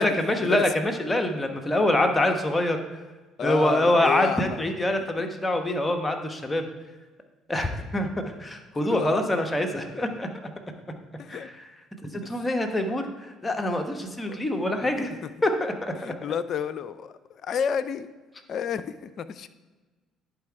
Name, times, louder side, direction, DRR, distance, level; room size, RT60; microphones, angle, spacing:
voice 1, 0.0-3.0 3.4-6.7 7.5-10.3 11.3-11.5 12.0-15.1 15.4-15.9, left 1 dB, 20° left, 5 dB, 1.2 m, -25 dB
voice 2, 3.4-4.6 8.7-9.1 11.2-11.5 12.2-12.5 13.6-13.7 14.3-14.4 14.7-15.3 15.9-18.1 18.5-19.5, left 7 dB, 55° left, 12 dB, 0.5 m, -31 dB
10.5 x 4.8 x 4.7 m, 1.3 s
hypercardioid pair, 60°, 0 cm